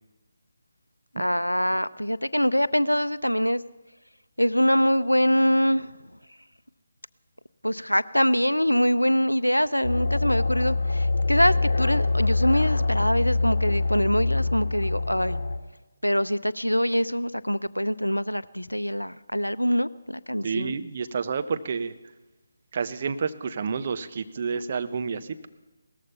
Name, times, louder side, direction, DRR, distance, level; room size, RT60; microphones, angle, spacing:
voice 1, 1.1-3.6 4.4-5.9 7.6-15.4 16.0-20.7, equal, 90° left, 16 dB, 0.6 m, -24 dB
sound 1, 9.8-15.6, left 3 dB, 60° left, 1.7 m, -24 dB
voice 2, 20.4-21.9 22.7-25.5, right 5 dB, 35° right, 10 dB, 0.9 m, -29 dB
18.0 x 14.0 x 5.6 m, 1.2 s
figure-of-eight pair, 150°, 0 cm